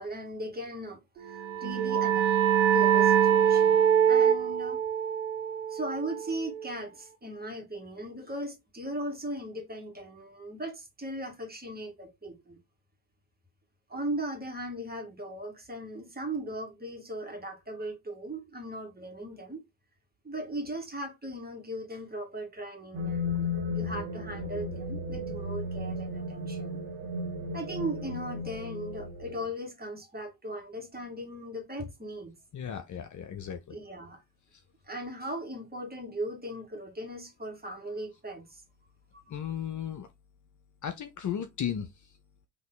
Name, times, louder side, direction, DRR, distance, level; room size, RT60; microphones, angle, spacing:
voice 1, 0.0-2.4 2.7-4.8 5.7-12.6 13.9-19.7 20.2-26.8 27.5-32.3 33.7-34.2 34.8-38.6 39.1-39.5, right 1 dB, 20° right, 2.1 m, -38 dB
sound 1, 1.3-6.7, right 8 dB, 75° right, 0.8 m, -24 dB
sound 2, 22.9-29.5, left 2 dB, 60° right, 1.5 m, -34 dB
voice 2, 32.5-33.8 39.3-40.1 40.8-41.9, left 9 dB, 40° left, 0.8 m, -35 dB
4.0 x 3.0 x 3.9 m
figure-of-eight pair, 45°, 47 cm